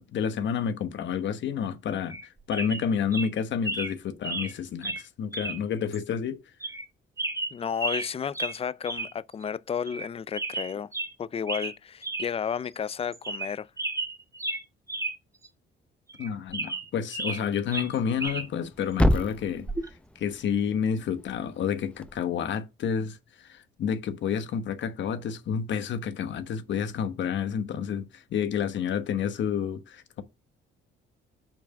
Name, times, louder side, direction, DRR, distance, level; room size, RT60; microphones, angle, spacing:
voice 1, 0.0-6.4 16.2-19.7 20.2-30.2, left 7 dB, 70° left, 1.1 m, -30 dB
sound 1, 2.1-2.3 2.5-2.8 3.1-3.3 3.6-3.9 4.2-4.5 4.8-5.0 5.3-5.6 5.9-6.0 6.6-6.9 7.2-8.1 8.3-8.6 8.9-9.1 9.4-9.5 9.9-10.1 10.3-11.1 11.5-11.7 12.0-12.3 12.7-12.8 13.1-13.5 13.8-15.1 15.4-15.5 16.1-17.4 17.7-18.5 19.7-19.9, right 2 dB, 15° right, 1.5 m, -33 dB
voice 2, 7.5-10.9 11.2-13.7, left 7 dB, 30° left, 0.4 m, -32 dB
Thump thud, 18.1-22.2, left 1 dB, 5° left, 0.8 m, -30 dB
5.9 x 4.6 x 5.8 m
cardioid pair, 90°, 20 cm